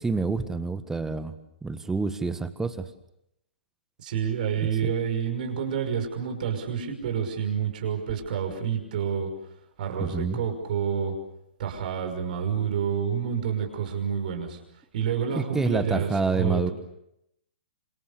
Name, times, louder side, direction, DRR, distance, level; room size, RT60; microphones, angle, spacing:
voice 1, 0.0-1.3 1.6-2.8 10.0-10.4 15.3-16.7, right 4 dB, 5° right, 13 dB, 1.6 m, -27 dB
voice 2, 4.0-9.3 9.8-11.1 11.6-14.6 14.9-16.7, right 7 dB, 50° right, 5 dB, 5.7 m, -28 dB
28.0 x 26.5 x 6.9 m, 0.79 s
figure-of-eight pair, 115°, 6 cm